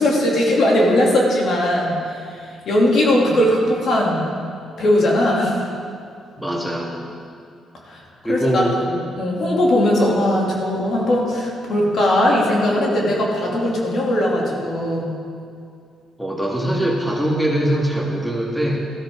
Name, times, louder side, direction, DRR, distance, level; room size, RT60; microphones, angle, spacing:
voice 1, 0.0-4.4 4.8-5.6 7.9-8.0 8.3-15.1, left 1 dB, 60° left, -3 dB, 2.8 m, -19 dB
voice 2, 6.4-7.0 8.2-8.8 16.2-18.8, right 1 dB, ahead, -2 dB, 1.9 m, -22 dB
13.5 x 13.0 x 3.8 m, 2.3 s
cardioid pair, 90°, 0 cm